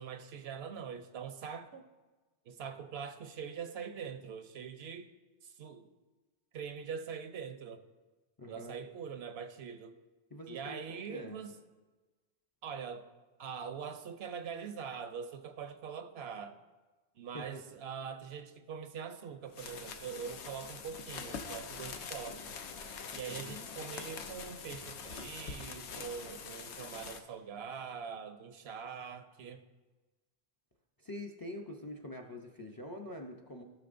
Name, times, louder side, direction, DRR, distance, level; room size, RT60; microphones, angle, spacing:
voice 1, 0.0-1.8 2.5-5.1 5.4-5.9 6.5-7.8 8.5-10.0 10.5-11.5 12.6-13.1 13.4-16.6 17.2-22.6 23.1-29.6, right 6 dB, 75° right, 9 dB, 0.9 m, -43 dB
voice 2, 8.4-8.8 10.3-11.4 17.3-17.6 23.3-23.7 31.0-33.6, left 1 dB, 25° left, 3 dB, 0.5 m, -45 dB
sound 1, 19.5-27.2, left 5 dB, 85° left, 1.0 m, -44 dB
16.0 x 6.2 x 2.5 m, 1.2 s
omnidirectional pair, 1.1 m